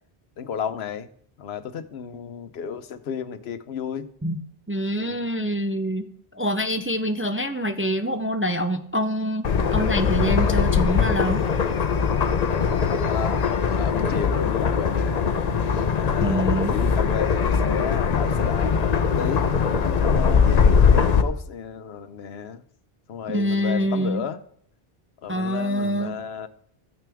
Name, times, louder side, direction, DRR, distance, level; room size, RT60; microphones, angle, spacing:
voice 1, 0.4-1.1 1.4-4.1 5.0-5.2 13.1-15.2 15.9-18.7 19.2-19.5 20.0-22.6 23.1-24.4 25.2-26.5, left 7 dB, 90° left, 1.0 m, -32 dB
voice 2, 4.7-6.1 6.3-11.4 16.2-16.7 23.3-24.2 25.3-26.1, equal, 20° right, 0.3 m, -25 dB
sound 1, 9.4-21.2, left 6 dB, 45° left, 0.7 m, -21 dB
13.5 x 9.2 x 3.5 m
omnidirectional pair, 1.0 m